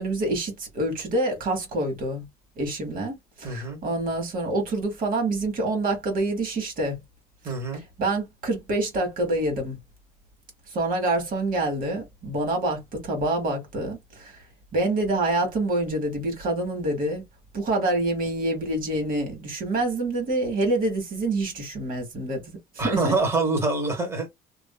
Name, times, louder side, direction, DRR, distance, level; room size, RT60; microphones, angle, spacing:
voice 1, 0.0-2.2 2.6-7.0 8.0-9.8 10.7-14.4 14.7-17.2 17.5-23.1, right 2 dB, 55° right, 1.4 m, -26 dB
voice 2, 3.4-3.8 7.4-7.8 22.8-24.3, right 3 dB, 15° right, 1.3 m, -25 dB
2.5 x 2.5 x 2.3 m
cardioid pair, 110°, 17 cm